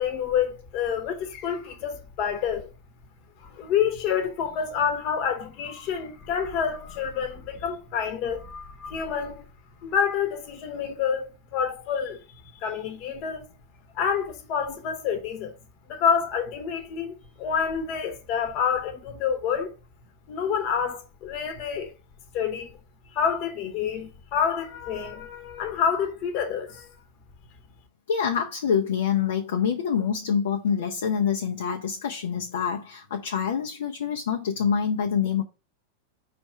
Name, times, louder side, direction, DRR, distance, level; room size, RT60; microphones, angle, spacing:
voice 1, 0.0-2.7 3.5-9.4 9.8-12.2 12.5-13.5 13.9-15.5 15.9-19.7 20.3-21.9 22.3-22.8 23.1-26.9, left 7 dB, 40° left, 1.0 m, -28 dB
voice 2, 28.1-35.4, left 7 dB, 60° left, 0.6 m, -26 dB
5.2 x 3.3 x 5.5 m
figure-of-eight pair, 90°, 0 cm